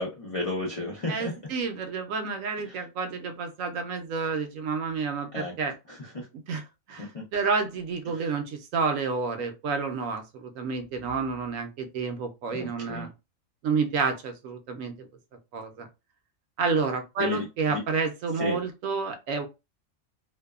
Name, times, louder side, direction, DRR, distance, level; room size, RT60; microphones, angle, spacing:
voice 1, 0.0-1.4 2.7-2.8 5.3-5.5 5.9-6.3 7.0-7.2 8.1-8.3 12.5-13.1 17.2-17.8 18.4-18.6, left 2 dB, 55° left, -3 dB, 0.4 m, -33 dB
voice 2, 1.1-5.7 6.5-6.6 6.9-13.1 13.6-15.1 15.5-15.9 16.6-19.5, right 4 dB, 70° right, 6 dB, 0.9 m, -29 dB
2.6 x 2.2 x 2.3 m, 0.25 s
omnidirectional pair, 1.5 m